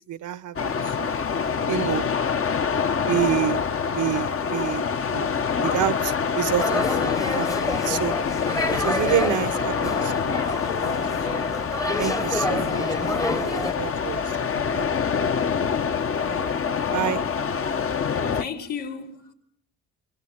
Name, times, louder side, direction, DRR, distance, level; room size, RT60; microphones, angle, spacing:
voice 1, 0.1-1.1 1.7-2.1 3.1-3.6 3.9-8.1 8.7-10.5 10.7-11.0 11.3-11.4 12.0-14.2 14.5-14.9 16.3-16.5 16.9-17.2, right 11 dB, 75° right, 1.3 m, -29 dB
sound 1, 0.6-18.4, left 6 dB, 45° left, 1.3 m, -25 dB
sound 2, 6.6-13.7, left 2 dB, 10° left, 1.1 m, -29 dB
voice 2, 17.9-19.3, left 6 dB, 75° left, 5.1 m, -35 dB
26.0 x 25.0 x 8.9 m
cardioid pair, 90°, 30 cm